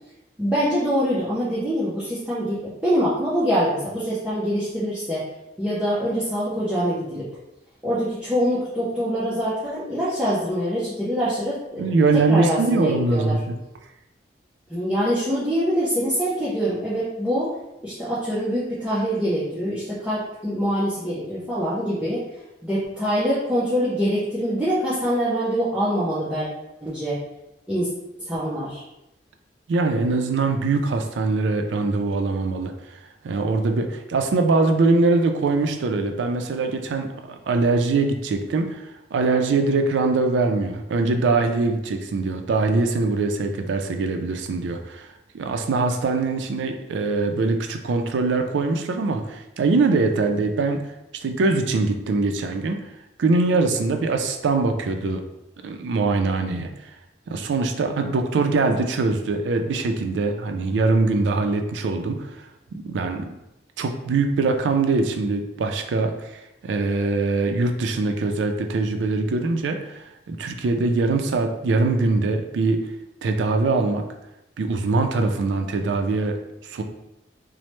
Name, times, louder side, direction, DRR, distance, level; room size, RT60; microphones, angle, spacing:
voice 1, 0.4-5.2 5.6-7.2 7.8-11.9 12.3-13.4 14.7-17.6 17.8-22.2 22.6-26.5 26.8-27.2 27.7-27.9 28.2-28.8, equal, 5° right, -11 dB, 0.5 m, -24 dB
voice 2, 11.8-13.5 29.7-32.7 33.2-45.1 45.3-50.8 51.1-52.8 53.2-55.2 55.6-56.7 57.3-62.3 62.7-63.3 63.8-72.9 73.2-74.1 74.6-76.4 76.6-76.8, right 3 dB, 90° right, 5 dB, 0.4 m, -22 dB
3.0 x 2.0 x 3.0 m, 0.91 s
head